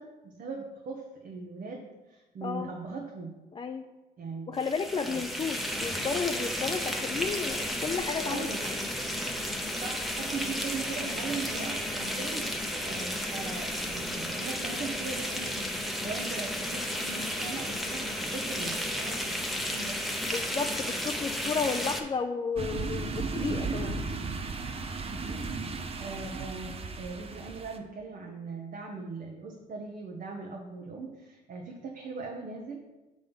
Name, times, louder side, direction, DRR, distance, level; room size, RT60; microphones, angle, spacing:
voice 1, 0.0-3.3 4.2-4.6 5.0-5.2 8.2-8.6 9.8-15.7 16.0-19.4 19.7-20.0 25.2-32.8, right 4 dB, 55° right, 0 dB, 1.0 m, -40 dB
voice 2, 3.5-3.8 4.5-8.9 20.2-24.0, left 5 dB, 30° left, 5 dB, 0.4 m, -33 dB
sound 1, 4.6-22.0, equal, ahead, 0.8 m, -33 dB
sound 2, 22.6-27.8, right 4 dB, 35° right, 0.7 m, -35 dB
7.0 x 3.8 x 5.4 m, 1.1 s
cardioid pair, 85°, 17 cm